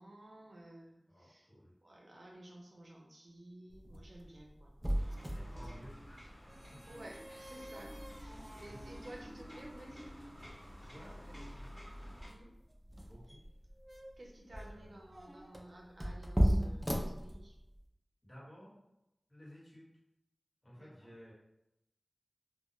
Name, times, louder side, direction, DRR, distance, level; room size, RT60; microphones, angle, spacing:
voice 1, 0.0-1.5 1.8-4.7 5.0-5.4 6.9-10.2 12.3-12.5 14.2-17.6 20.7-21.1, right 1 dB, 70° right, -1 dB, 0.5 m, -54 dB
voice 2, 1.1-1.8 5.2-6.3 6.7-6.8 8.5-8.9 10.9-11.7 13.0-13.4 14.6-15.0 18.2-18.8 19.3-20.0 20.6-21.3, equal, 35° left, -7 dB, 1.3 m, -55 dB
sound 1, 3.7-17.9, equal, 10° right, 0.4 m, -38 dB
sound 2, 4.9-12.3, equal, 15° left, 1.1 m, -51 dB
2.2 x 2.1 x 2.9 m, 0.87 s
wide cardioid pair, 40°, 0 cm